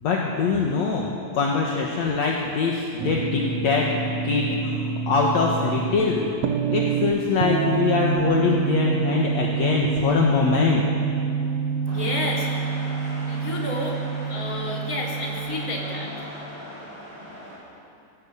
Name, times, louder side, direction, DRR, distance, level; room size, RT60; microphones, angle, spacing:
voice 1, 0.0-3.9 4.2-4.8 5.1-6.3 6.7-10.8, left 5 dB, 60° left, -2 dB, 2.6 m, -23 dB
sound 1, 3.0-16.1, right 6 dB, 65° right, 2.0 m, -27 dB
voice 2, 11.9-12.5 13.3-14.0 14.3-16.3, left 2 dB, 25° left, -3 dB, 3.6 m, -30 dB
sound 2, 11.9-17.6, equal, 40° right, 7.1 m, -40 dB
19.0 x 17.5 x 8.4 m, 2.6 s
omnidirectional pair, 3.8 m